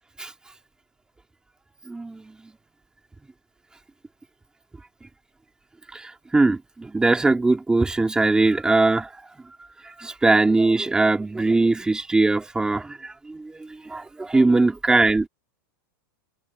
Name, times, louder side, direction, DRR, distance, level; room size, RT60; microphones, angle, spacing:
voice 1, 1.9-2.4 5.9-9.1 10.0-15.3, right 3 dB, 5° right, 2.7 m, -21 dB
supercardioid pair, 155°, 12 cm